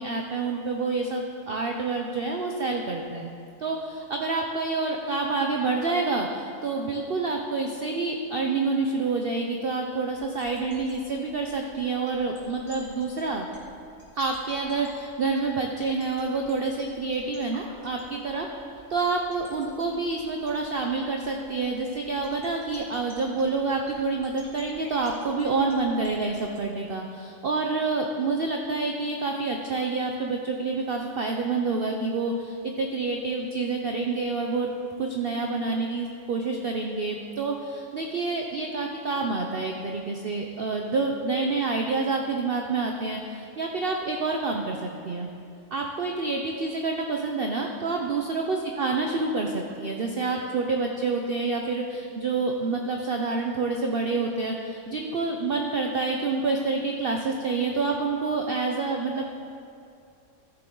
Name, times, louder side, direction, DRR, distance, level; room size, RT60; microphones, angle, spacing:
voice 1, 0.0-3.3 3.6-13.5 14.1-18.5 18.9-34.7 35.0-45.3 45.7-59.3, right 3 dB, 55° right, 2 dB, 0.7 m, -28 dB
sound 1, 10.1-26.6, left 1 dB, 70° left, 2.8 m, -51 dB
15.0 x 6.9 x 3.8 m, 2.5 s
omnidirectional pair, 1.6 m